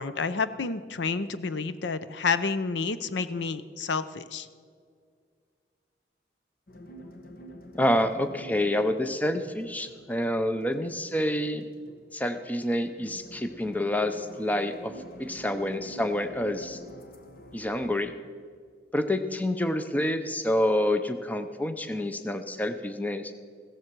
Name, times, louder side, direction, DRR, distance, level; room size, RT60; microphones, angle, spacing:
voice 1, 0.0-4.5, left 4 dB, 70° left, 13 dB, 0.6 m, -29 dB
sound 1, 6.7-18.0, equal, 50° left, 1.2 m, -48 dB
voice 2, 7.7-11.6 12.1-14.9 15.2-16.8 17.5-18.1 18.9-23.3, left 1 dB, 10° left, 9 dB, 0.6 m, -28 dB
16.0 x 14.0 x 4.6 m, 2.1 s
head